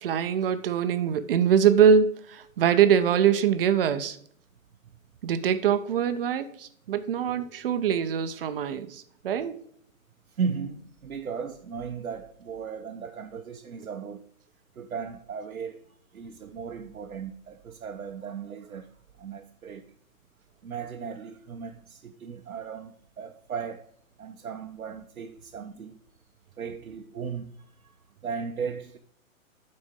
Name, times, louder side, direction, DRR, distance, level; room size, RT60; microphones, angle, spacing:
voice 1, 0.0-4.2 5.2-9.5, right 8 dB, 45° right, 0.7 m, -23 dB
voice 2, 10.3-14.3 14.8-15.8 16.1-18.9 19.2-19.9 20.6-23.9 24.2-26.0 26.6-27.9 28.2-29.0, right 6 dB, 90° right, 0.8 m, -36 dB
10.5 x 4.3 x 3.7 m
hypercardioid pair, 135°, 41 cm